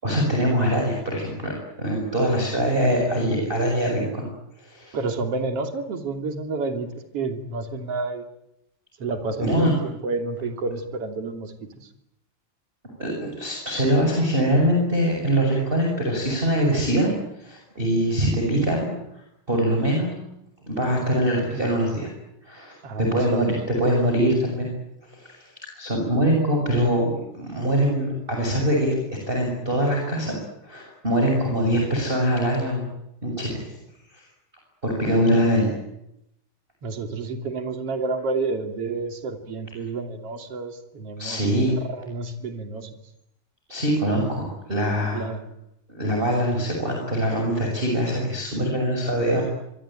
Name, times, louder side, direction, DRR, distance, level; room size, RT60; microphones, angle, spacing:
voice 1, 0.0-1.5 1.8-4.3 4.6-5.0 9.4-9.7 13.0-17.1 17.4-18.9 19.5-20.1 20.6-22.1 22.4-24.7 25.1-25.5 25.8-28.9 29.3-30.3 30.6-32.9 33.2-33.6 34.1-34.2 34.8-35.7 41.2-41.7 43.7-45.2 45.9-49.4, equal, 10° right, 0 dB, 6.6 m, -23 dB
voice 2, 4.9-8.2 9.0-11.9 22.8-23.6 36.8-41.5 41.8-42.9 45.1-45.4, right 3 dB, 35° right, 6 dB, 3.4 m, -30 dB
26.0 x 24.0 x 9.1 m, 0.82 s
omnidirectional pair, 5.1 m